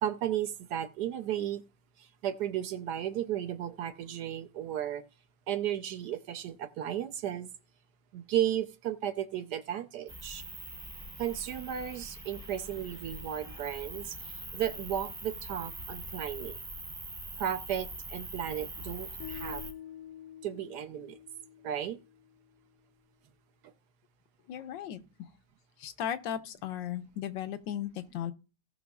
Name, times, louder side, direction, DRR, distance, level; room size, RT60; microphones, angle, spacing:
voice 1, 0.0-1.6 2.2-5.0 5.5-7.5 8.1-10.4 11.2-14.2 14.5-16.5 17.4-19.6 20.4-21.2 21.6-22.0, right 10 dB, 70° right, 1.2 m, -34 dB
sound 1, 10.1-19.7, right 2 dB, 20° right, 0.7 m, -43 dB
sound 2, 19.2-22.4, left 11 dB, 65° left, 1.0 m, -47 dB
voice 2, 24.5-25.0 25.8-28.3, left 10 dB, 90° left, 1.4 m, -36 dB
17.5 x 6.0 x 2.4 m
omnidirectional pair, 2.0 m